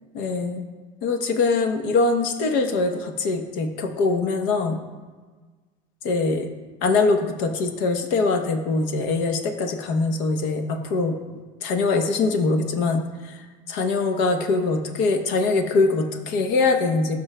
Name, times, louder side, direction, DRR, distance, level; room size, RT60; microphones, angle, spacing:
voice 1, 0.1-0.6 1.0-4.8 6.0-6.5 6.8-11.1 11.6-13.0 13.7-17.2, left 3 dB, 65° left, 6 dB, 0.9 m, -23 dB
13.0 x 5.4 x 2.2 m, 1.4 s
supercardioid pair, 115°, 21 cm